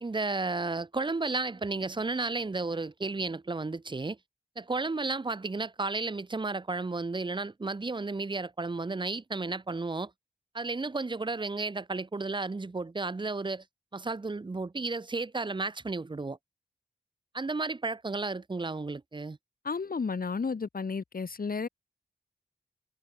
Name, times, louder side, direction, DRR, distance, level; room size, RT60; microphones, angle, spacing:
voice 1, 0.0-4.2 4.6-10.1 10.5-13.6 13.9-16.4 17.3-19.4, right 3 dB, 30° right, 0.7 m, -33 dB
voice 2, 19.6-21.7, left 5 dB, 60° left, 1.6 m, -32 dB
wide cardioid pair, 75°, 17 cm